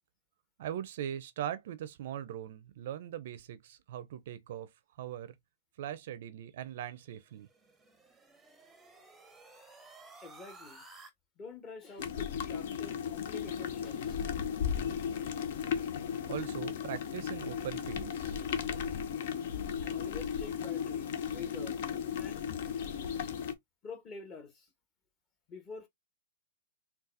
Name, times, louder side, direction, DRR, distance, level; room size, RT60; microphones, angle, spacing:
voice 1, 0.6-4.7 5.0-5.3 5.8-7.5 16.3-18.4, right 11 dB, 60° right, 0.5 m, -40 dB
sound 1, 7.1-11.1, right 3 dB, 5° right, 0.7 m, -55 dB
voice 2, 10.2-10.8 11.4-14.2 16.4-16.5 19.8-21.8 22.2-22.5 23.8-24.7 25.5-25.9, left 4 dB, 25° left, 1.1 m, -47 dB
sound 2, 12.0-23.5, left 7 dB, 60° left, 0.6 m, -35 dB
4.0 x 2.3 x 2.6 m
hypercardioid pair, 135°, 0 cm